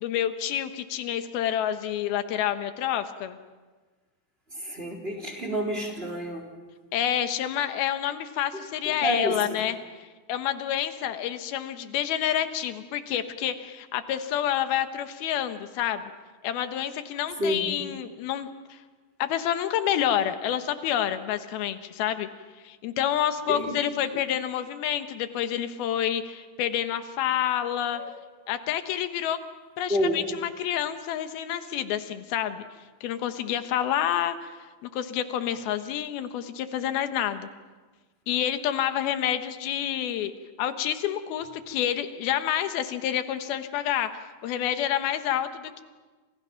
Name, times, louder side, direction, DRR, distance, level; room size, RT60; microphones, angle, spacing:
voice 1, 0.0-3.4 6.9-9.8 10.3-16.1 16.4-18.8 19.2-22.3 22.6-28.0 28.5-29.4 29.8-32.6 33.0-34.6 34.8-37.5 38.3-40.3 40.6-45.8, left 10 dB, 90° left, 9 dB, 3.1 m, -28 dB
voice 2, 4.5-6.4 8.9-9.6 17.4-17.7 23.5-23.8 27.9-28.1 29.9-30.2, equal, 15° right, 2 dB, 3.6 m, -29 dB
29.0 x 27.5 x 5.8 m, 1.3 s
omnidirectional pair, 4.2 m